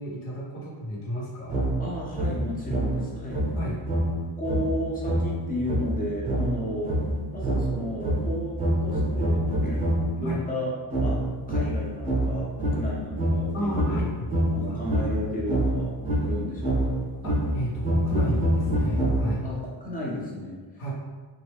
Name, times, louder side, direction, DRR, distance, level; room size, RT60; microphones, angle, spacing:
voice 1, 0.0-1.7 3.6-3.8 10.2-10.4 13.5-14.3 14.7-14.8 17.2-19.4 20.8-20.9, equal, 90° left, -5 dB, 1.2 m, -32 dB
sound 1, 1.5-10.2 10.9-19.6, right 1 dB, 15° right, 0.7 m, -26 dB
voice 2, 1.8-3.4 4.4-6.9 7.3-9.8 10.1-10.7 11.0-14.0 14.5-15.9 16.2-17.0 19.4-20.6, left 1 dB, 20° left, -4 dB, 0.6 m, -33 dB
3.1 x 2.4 x 3.4 m, 1.4 s
cardioid pair, 165°, 48 cm